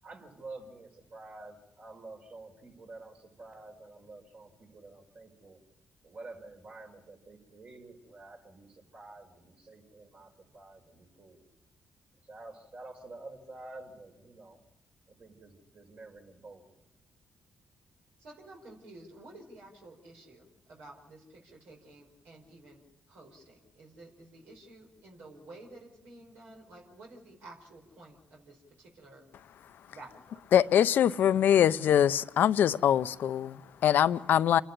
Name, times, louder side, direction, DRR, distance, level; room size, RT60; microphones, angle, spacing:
voice 1, 0.0-5.6 6.0-11.4 12.2-14.6 15.1-16.7, right 2 dB, 55° right, 0 dB, 5.5 m, -49 dB
voice 2, 18.2-22.8 23.1-29.2 29.9-30.4, right 2 dB, 80° right, -1 dB, 5.0 m, -52 dB
voice 3, 30.5-34.6, left 10 dB, 75° left, 14 dB, 0.7 m, -23 dB
28.5 x 11.5 x 10.0 m, 0.90 s
supercardioid pair, 60°, 3 cm